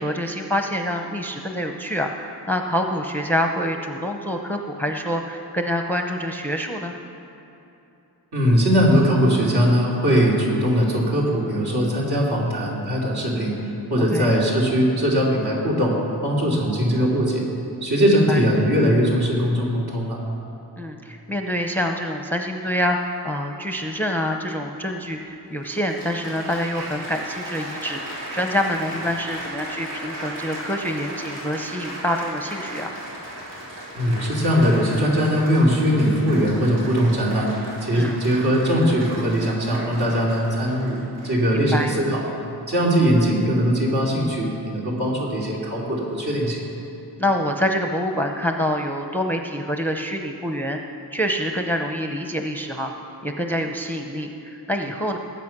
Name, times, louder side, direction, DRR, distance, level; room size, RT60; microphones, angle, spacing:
voice 1, 0.0-6.9 14.1-14.3 18.3-18.4 20.8-32.9 37.9-38.2 41.5-41.9 47.2-50.8 51.1-52.9 53.2-55.2, equal, 5° left, 4 dB, 0.6 m, -26 dB
voice 2, 8.3-15.9 16.2-17.4 17.8-20.2 34.0-37.5 37.8-41.0 41.2-42.2 42.7-46.6, equal, 65° right, -4 dB, 3.3 m, -20 dB
Applause, 24.9-25.0 25.6-41.5 42.3-42.6, right 1 dB, 85° right, 3.4 m, -36 dB
20.0 x 8.2 x 6.0 m, 2.9 s
wide cardioid pair, 135°, 42 cm